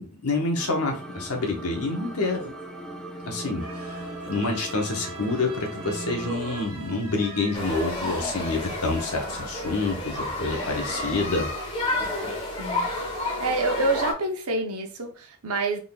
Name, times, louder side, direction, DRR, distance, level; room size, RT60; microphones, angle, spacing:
voice 1, 0.0-2.5 3.2-4.0 4.3-11.5, left 3 dB, 85° left, 2 dB, 1.2 m, -28 dB
sound 1, 0.6-6.3, right 1 dB, ahead, 0.4 m, -39 dB
sound 2, 3.6-11.5, right 3 dB, 70° right, 1.4 m, -41 dB
sound 3, 7.5-14.1, left 2 dB, 25° left, 1.3 m, -31 dB
voice 2, 12.6-12.9 13.4-15.8, right 2 dB, 85° right, 3 dB, 0.9 m, -27 dB
3.9 x 3.7 x 2.4 m, 0.35 s
head